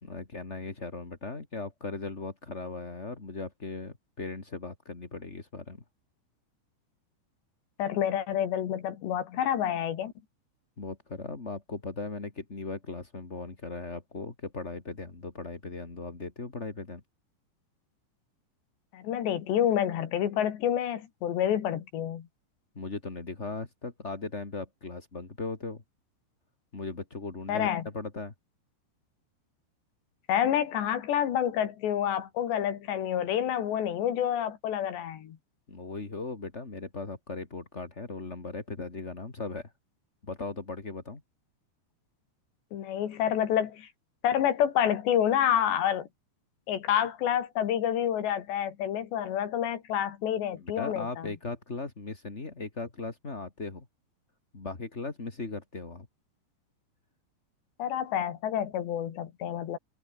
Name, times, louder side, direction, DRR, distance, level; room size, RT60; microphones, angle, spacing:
voice 1, 0.0-5.8 10.8-17.0 22.7-25.8 26.7-28.3 35.7-39.7 40.2-41.2 50.6-53.9 54.5-56.1, left 3 dB, 20° left, 1.9 m, -38 dB
voice 2, 7.8-10.1 18.9-22.3 27.5-27.8 30.3-35.4 42.7-43.9 44.2-46.1 46.7-51.3 57.8-59.8, left 10 dB, 70° left, 4.2 m, -28 dB
omnidirectional pair, 5.4 m